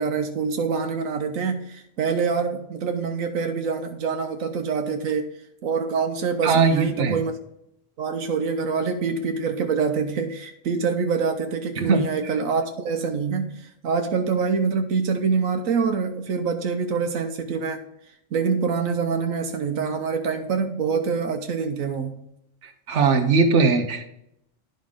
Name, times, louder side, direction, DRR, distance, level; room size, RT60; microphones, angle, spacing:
voice 1, 0.0-5.3 5.6-7.4 8.0-17.8 18.3-22.2, right 5 dB, 85° right, 5 dB, 1.3 m, -25 dB
voice 2, 6.4-7.2 11.9-12.0 22.9-24.0, right 4 dB, 65° right, 5 dB, 1.4 m, -19 dB
11.5 x 5.3 x 3.7 m, 0.78 s
omnidirectional pair, 1.4 m